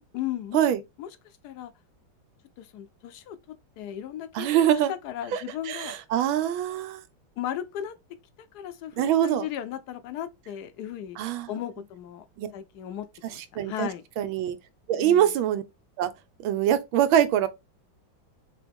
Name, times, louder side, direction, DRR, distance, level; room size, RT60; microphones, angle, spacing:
voice 1, 0.1-0.7 1.0-1.1 1.4-1.7 2.6-3.4 3.8-5.9 7.4-8.0 8.5-11.2 11.5-12.3 12.5-14.0 15.0-15.3, left 11 dB, 75° left, 0.9 m, -36 dB
voice 2, 4.3-4.9 5.7-7.0 9.0-9.5 11.2-11.5 12.4-12.5 13.6-13.9 14.2-14.6 14.9-15.6 16.0-16.1 16.4-17.5, right 10 dB, 85° right, 1.5 m, -23 dB
4.8 x 3.0 x 3.5 m
omnidirectional pair, 2.2 m